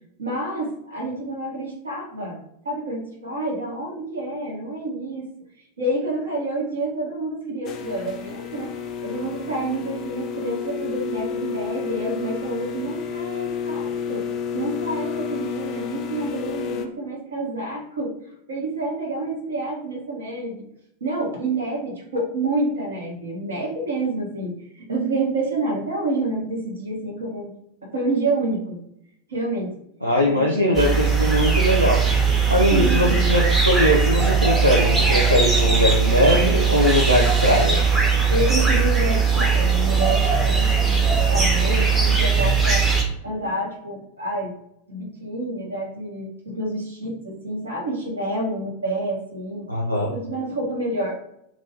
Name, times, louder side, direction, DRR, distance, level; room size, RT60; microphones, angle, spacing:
voice 1, 0.2-2.4 2.6-5.3 5.8-8.7 9.0-14.3 14.5-20.7 21.0-27.5 27.8-28.8 29.3-29.7 30.2-30.9 32.7-33.3 38.3-42.8 43.2-44.5 44.9-49.7 50.1-51.1, right 2 dB, 70° right, -1 dB, 0.9 m, -28 dB
sound 1, 7.7-16.9, left 7 dB, 35° left, 0.4 m, -31 dB
voice 2, 30.0-32.0 32.5-37.8 49.7-50.1, left 1 dB, 85° right, -2 dB, 0.4 m, -20 dB
sound 2, 30.7-43.0, right 5 dB, 15° right, 0.7 m, -19 dB
2.5 x 2.3 x 3.4 m, 0.77 s
figure-of-eight pair, 90°, 0 cm